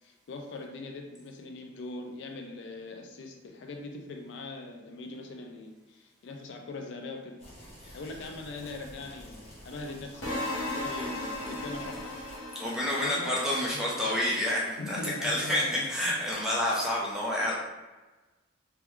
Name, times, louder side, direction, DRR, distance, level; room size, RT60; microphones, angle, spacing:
voice 1, 0.0-7.4 7.9-12.6 13.0-13.3 13.7-13.9 14.8-15.9, left 2 dB, 65° left, 3 dB, 0.3 m, -41 dB
sound 1, 7.4-12.4, equal, 30° left, 0.8 m, -49 dB
sound 2, 10.2-14.3, left 1 dB, 90° left, 1.0 m, -36 dB
voice 2, 12.5-17.5, left 1 dB, 5° right, -6 dB, 0.5 m, -29 dB
3.4 x 2.2 x 3.1 m, 1.2 s
head